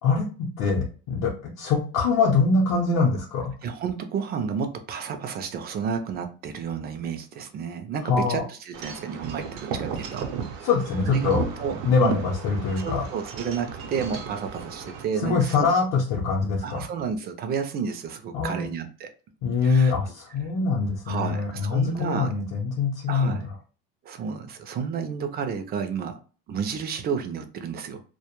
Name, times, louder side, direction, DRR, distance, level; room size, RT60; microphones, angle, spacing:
voice 1, 0.0-3.4 8.0-8.4 10.6-11.4 11.8-13.0 15.2-16.8 18.3-18.7 19.4-23.5, left 4 dB, 55° left, 0.6 m, -23 dB
voice 2, 3.6-10.2 10.6-10.7 11.1-12.1 12.8-15.7 16.6-19.1 19.6-19.9 21.1-22.3 23.1-23.4 24.0-26.1 26.5-28.0, right 6 dB, 30° right, 0.4 m, -31 dB
Wind chime / Wind, 8.7-15.0, right 6 dB, 80° right, 0.6 m, -35 dB
2.2 x 2.1 x 2.9 m
cardioid pair, 135°, 32 cm